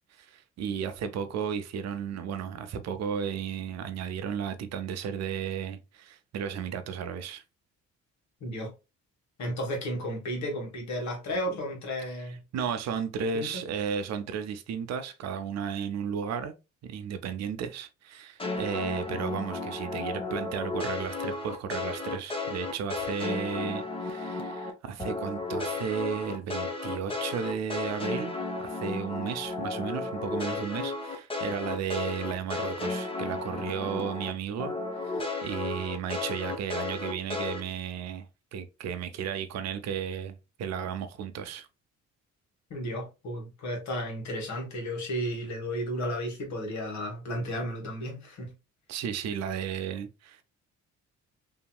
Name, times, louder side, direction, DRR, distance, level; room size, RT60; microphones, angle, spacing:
voice 1, 0.0-7.4 12.5-16.5 16.8-38.3 38.5-41.7 48.9-50.4, right 7 dB, 60° right, 0.5 m, -34 dB
voice 2, 8.4-8.7 9.4-12.4 13.3-13.5 42.7-48.5, equal, 65° left, 1.4 m, -33 dB
sound 1, 18.4-24.7 25.0-34.3 34.6-37.6, left 3 dB, 20° left, 0.7 m, -33 dB
2.8 x 2.8 x 2.2 m
cardioid pair, 90°, 30 cm